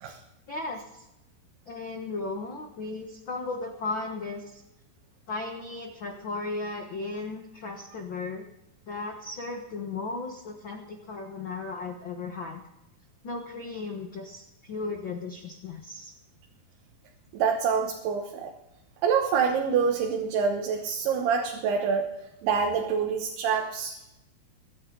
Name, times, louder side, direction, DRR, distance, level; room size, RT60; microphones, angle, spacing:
voice 1, 0.5-1.1 1.7-4.6 5.3-8.4 8.9-12.6 13.2-16.1, left 3 dB, 75° left, 2 dB, 1.1 m, -36 dB
voice 2, 17.3-18.5 19.0-22.1 22.4-24.0, right 6 dB, 85° right, 2 dB, 3.2 m, -26 dB
23.5 x 9.5 x 3.9 m, 0.88 s
omnidirectional pair, 4.5 m